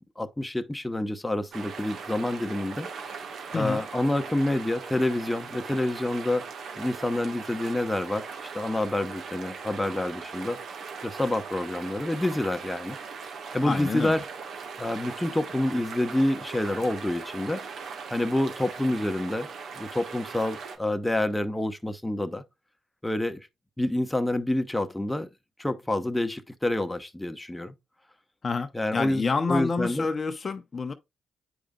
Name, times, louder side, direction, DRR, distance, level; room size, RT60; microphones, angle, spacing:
voice 1, 0.2-2.9 3.5-6.5 6.8-8.3 8.5-10.6 11.0-13.0 13.5-14.2 14.8-17.6 18.1-19.5 19.8-22.4 23.0-23.4 23.8-25.3 25.6-27.7 28.7-29.2 29.5-30.1, left 1 dB, 10° left, 1.0 m, -27 dB
sound 1, 1.5-20.8, right 5 dB, 65° right, 1.4 m, -40 dB
voice 2, 13.6-14.2 28.4-30.9, left 4 dB, 45° left, 0.7 m, -28 dB
9.0 x 5.1 x 2.3 m
hypercardioid pair, 50°, 0 cm